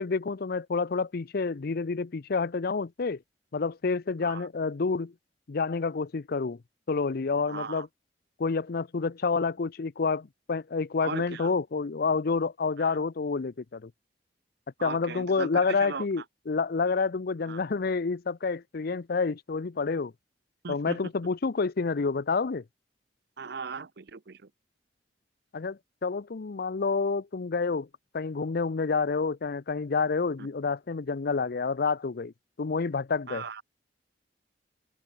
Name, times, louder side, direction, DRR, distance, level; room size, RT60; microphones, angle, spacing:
voice 1, 0.0-3.2 3.5-5.1 5.5-6.6 6.9-7.9 8.4-13.9 14.8-20.1 20.7-22.6 25.5-27.9 28.1-32.3 32.6-33.6, left 4 dB, 60° left, 0.6 m, -28 dB
voice 2, 7.5-7.9 11.0-11.5 12.8-12.9 14.8-16.0 17.5-17.6 20.6-21.0 23.4-24.4 33.3-33.6, right 5 dB, 65° right, 0.8 m, -38 dB
open air
head